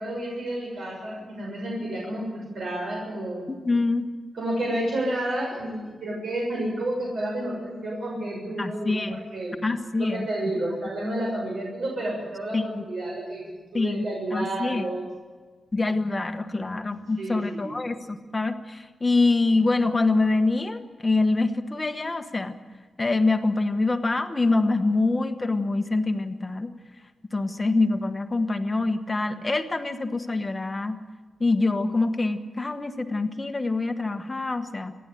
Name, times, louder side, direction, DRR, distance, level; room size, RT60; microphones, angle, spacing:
voice 1, 0.0-3.5 4.3-9.6 10.0-15.1 17.2-17.7, right 1 dB, 70° right, -2 dB, 6.8 m, -30 dB
voice 2, 3.5-4.1 8.6-9.2 9.6-10.3 12.5-12.8 13.7-14.0 14.3-14.8 15.7-22.5 23.0-26.7 27.3-31.0 31.4-35.0, left 3 dB, 20° left, 8 dB, 1.2 m, -25 dB
28.0 x 11.0 x 9.8 m, 1.4 s
wide cardioid pair, 170°, 0 cm